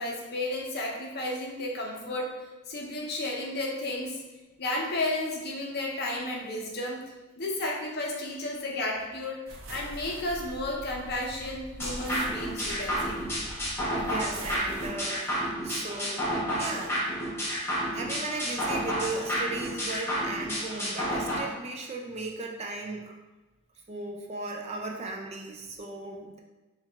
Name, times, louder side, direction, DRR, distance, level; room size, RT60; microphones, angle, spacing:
voice 1, 0.0-2.3 2.7-4.2 4.6-7.0 7.4-13.2, left 1 dB, 50° left, -1 dB, 0.7 m, -33 dB
sound 1, 9.5-14.9, right 1 dB, 70° right, 0.7 m, -43 dB
sound 2, 11.8-21.4, equal, 10° left, 0.7 m, -31 dB
voice 2, 14.1-16.3 16.6-17.0 17.9-23.2 23.9-26.4, right 2 dB, 30° right, 1 dB, 0.3 m, -36 dB
4.7 x 2.3 x 3.4 m, 1.2 s
head